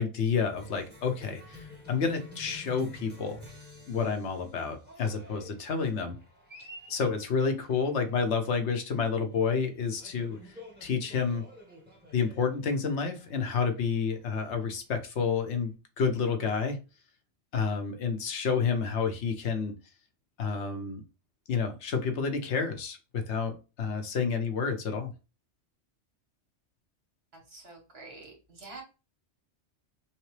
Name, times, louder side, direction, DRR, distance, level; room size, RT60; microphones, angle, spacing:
voice 1, 0.0-3.4 3.9-6.2 6.9-11.5 12.1-16.9 17.5-19.7 20.4-21.0 21.5-25.1, left 5 dB, 75° left, 1.1 m, -30 dB
Cheering, 0.5-15.7, left 1 dB, 10° right, 1.3 m, -51 dB
voice 2, 27.3-28.8, right 3 dB, 60° right, 1.7 m, -47 dB
5.7 x 2.2 x 3.2 m
omnidirectional pair, 1.2 m